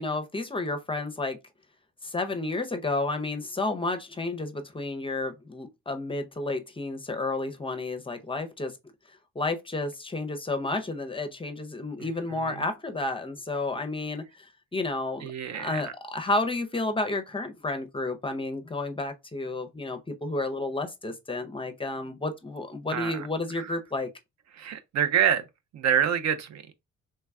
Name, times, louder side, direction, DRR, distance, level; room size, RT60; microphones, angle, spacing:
voice 1, 0.0-1.4 2.0-8.7 9.4-15.3 15.6-24.1, left 2 dB, 15° left, 0.6 m, -31 dB
voice 2, 15.2-15.9 22.9-23.2 24.6-25.4 25.7-26.7, right 9 dB, 60° right, 0.6 m, -26 dB
3.2 x 2.2 x 3.5 m
cardioid pair, 90°, 30 cm